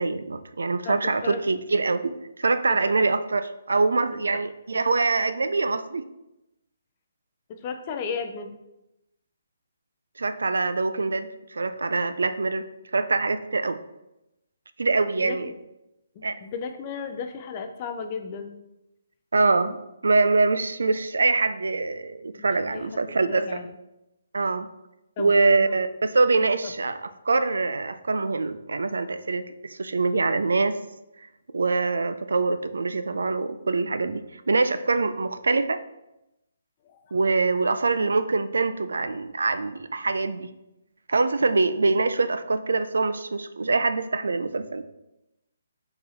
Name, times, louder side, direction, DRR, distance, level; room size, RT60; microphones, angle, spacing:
voice 1, 0.0-6.0 10.2-12.7 12.9-13.8 14.8-15.5 16.2-16.4 19.3-19.8 20.0-23.6 24.3-24.7 25.2-30.8 31.2-31.3 31.5-35.8 37.1-40.5 41.1-44.8, right 3 dB, 90° right, 12 dB, 0.3 m, -24 dB
voice 2, 0.8-1.4 2.7-2.8 7.5-8.5 15.2-15.4 16.2-18.6 22.4-22.9 23.3-23.7 25.2-25.7 26.6-26.7, left 6 dB, 25° left, 6 dB, 0.3 m, -34 dB
3.9 x 2.8 x 4.0 m, 0.92 s
hypercardioid pair, 165°, 0 cm